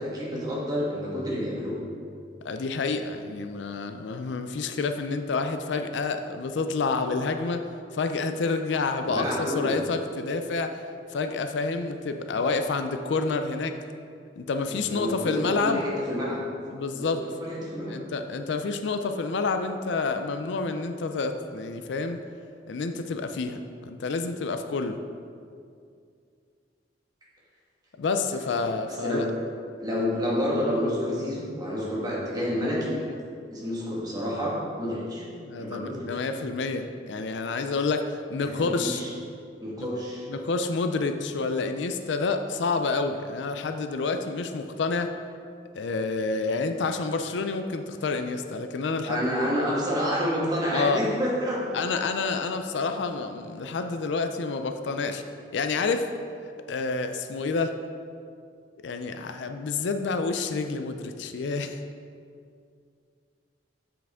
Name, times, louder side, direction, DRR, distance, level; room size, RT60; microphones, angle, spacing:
voice 1, 0.0-1.8 9.0-9.7 14.7-16.4 17.0-17.9 28.5-28.7 29.0-29.2 29.8-33.0 33.5-35.3 35.6-36.0 38.4-39.1 39.6-40.2 49.0-51.7, equal, 20° right, -5 dB, 1.5 m, -29 dB
voice 2, 2.4-7.7 7.9-10.8 11.1-13.8 14.4-15.8 16.7-17.3 17.9-22.2 22.7-23.6 23.9-25.0 28.0-29.3 35.3-39.0 39.8-39.9 40.3-45.1 45.7-49.3 50.7-51.0 51.7-55.2 55.5-56.1 56.7-57.8 58.8-61.8, left 4 dB, 75° left, 7 dB, 0.4 m, -28 dB
7.4 x 5.9 x 3.6 m, 2.3 s
head